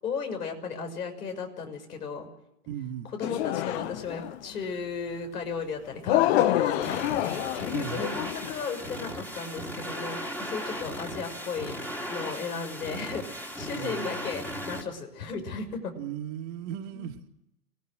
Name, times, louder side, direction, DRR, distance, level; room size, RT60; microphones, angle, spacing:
voice 1, 0.0-2.3 3.1-7.4 8.0-11.8 12.1-15.9 16.9-17.1, left 5 dB, 75° left, 5 dB, 6.2 m, -35 dB
voice 2, 2.7-3.1 7.7-8.1 13.7-14.3 16.0-17.3, right 9 dB, 40° right, 5 dB, 2.2 m, -37 dB
sound 1, 3.2-4.4 6.1-8.6, left 14 dB, 45° left, 0.9 m, -27 dB
sound 2, 6.8-14.8, equal, 5° left, 2.6 m, -37 dB
27.5 x 17.5 x 6.5 m, 0.82 s
hypercardioid pair, 120°, 46 cm